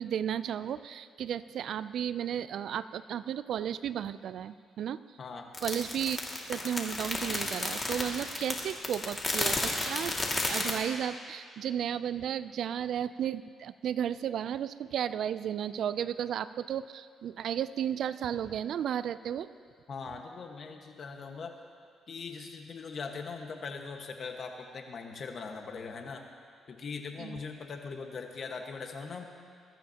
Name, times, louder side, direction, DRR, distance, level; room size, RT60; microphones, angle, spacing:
voice 1, 0.0-5.0 5.6-6.2 6.5-10.2 10.4-19.5 27.2-27.4, right 9 dB, 70° right, 15 dB, 0.4 m, -34 dB
voice 2, 5.2-5.5 19.9-21.5 22.1-26.3 26.7-29.2, left 5 dB, 50° left, 3 dB, 1.5 m, -41 dB
sound 1, 5.5-10.7, left 2 dB, 25° left, 2.2 m, -32 dB
21.5 x 13.5 x 2.9 m, 2.1 s
cardioid pair, 90°, 0 cm